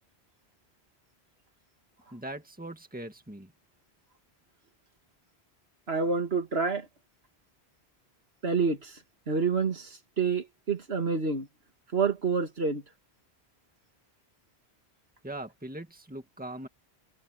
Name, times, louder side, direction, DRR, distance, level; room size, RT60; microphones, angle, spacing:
voice 1, 2.1-3.5 15.2-16.7, right 1 dB, 10° right, 2.1 m, -40 dB
voice 2, 5.9-6.9 8.4-9.0 9.3-11.5 11.9-12.8, right 4 dB, 70° right, 2.3 m, -28 dB
omnidirectional pair, 1.1 m